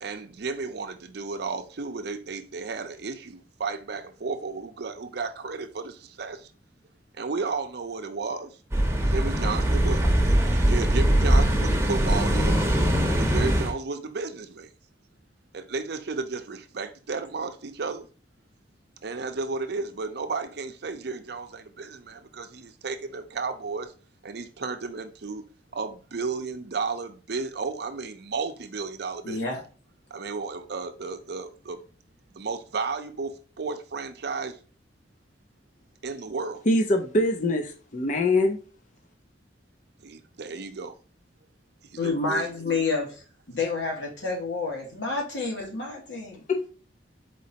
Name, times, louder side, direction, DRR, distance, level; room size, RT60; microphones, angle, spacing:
voice 1, 0.0-6.4 7.2-8.5 9.1-10.0 10.7-12.6 13.2-14.7 15.5-18.1 19.0-23.9 24.2-25.4 25.7-29.4 30.1-31.8 32.3-34.6 36.0-36.6 40.0-40.9 41.9-42.5, right 4 dB, 65° right, 0.6 m, -33 dB
sound 1, 8.7-13.7, right 1 dB, 15° right, 0.8 m, -22 dB
voice 2, 29.2-29.6 42.0-46.4, left 3 dB, 85° left, 1.8 m, -29 dB
voice 3, 36.7-38.6 46.5-46.7, left 1 dB, 45° left, 0.6 m, -23 dB
4.4 x 4.1 x 2.8 m
head